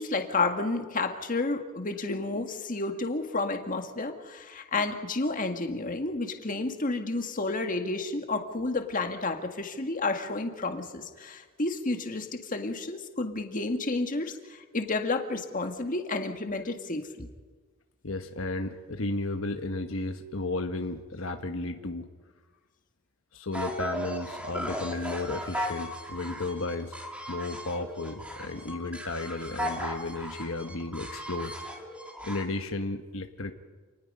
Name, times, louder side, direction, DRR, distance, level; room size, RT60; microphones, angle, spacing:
voice 1, 0.0-17.3, left 3 dB, 40° left, 5 dB, 1.8 m, -31 dB
voice 2, 18.0-22.1 23.3-27.0 27.3-31.8 32.2-33.5, left 2 dB, 70° left, 6 dB, 1.3 m, -34 dB
sound 1, 23.5-32.4, equal, 5° right, 2.6 m, -37 dB
28.0 x 19.5 x 5.5 m, 1.4 s
head